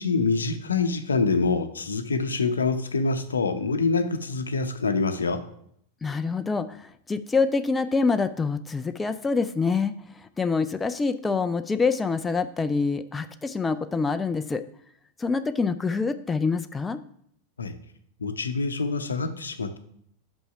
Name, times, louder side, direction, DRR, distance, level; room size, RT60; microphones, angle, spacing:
voice 1, 0.0-5.4 17.6-17.7 18.2-19.8, left 4 dB, 70° left, 9 dB, 0.7 m, -25 dB
voice 2, 6.0-9.9 10.4-14.6 15.2-17.0, left 4 dB, 15° left, 9 dB, 0.3 m, -26 dB
5.5 x 5.5 x 5.6 m, 0.68 s
figure-of-eight pair, 90°, 0 cm